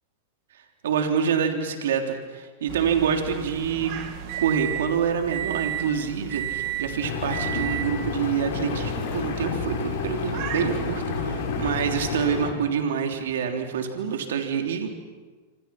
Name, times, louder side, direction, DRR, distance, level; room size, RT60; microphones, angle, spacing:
voice 1, 0.8-3.9 4.4-14.9, right 7 dB, 80° right, 4 dB, 3.3 m, -26 dB
sound 1, 2.7-12.1, right 10 dB, 50° right, 2.6 m, -34 dB
Engine, 7.0-12.5, left 6 dB, 65° left, 6.1 m, -30 dB
27.5 x 26.0 x 5.9 m, 1.4 s
hypercardioid pair, 120°, 0 cm